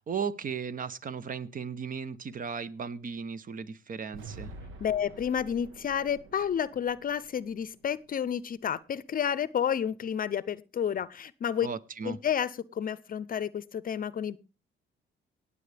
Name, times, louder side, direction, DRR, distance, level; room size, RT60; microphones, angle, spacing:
voice 1, 0.0-4.5 11.6-12.2, right 6 dB, 45° right, 0.9 m, -36 dB
sound 1, 4.1-8.3, right 3 dB, 85° right, 1.3 m, -48 dB
voice 2, 4.8-11.7 12.0-14.4, left 8 dB, 45° left, 0.6 m, -30 dB
18.5 x 8.4 x 3.4 m
cardioid pair, 90°, 20 cm